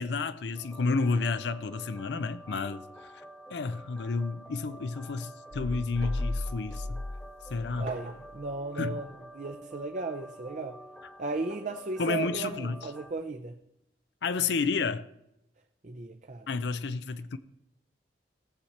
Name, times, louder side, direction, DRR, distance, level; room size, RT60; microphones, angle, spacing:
voice 1, 0.0-2.8 3.1-3.2 3.5-7.0 7.5-7.9 8.8-9.0 12.0-12.8 14.2-15.1 16.5-17.4, left 4 dB, 75° left, 0.5 m, -31 dB
sound 1, 0.5-13.1, right 1 dB, 5° left, 1.2 m, -49 dB
sound 2, 5.5-8.5, left 2 dB, 40° left, 0.8 m, -36 dB
sound 3, 6.0-6.4 6.7-6.8 7.9-8.3 9.4-9.6 11.3-11.7 12.8-13.0 14.2-14.4, right 1 dB, 75° right, 2.4 m, -45 dB
voice 2, 7.8-10.8 11.2-13.6 15.8-16.5, right 3 dB, 45° right, 0.6 m, -36 dB
17.5 x 7.3 x 4.2 m
head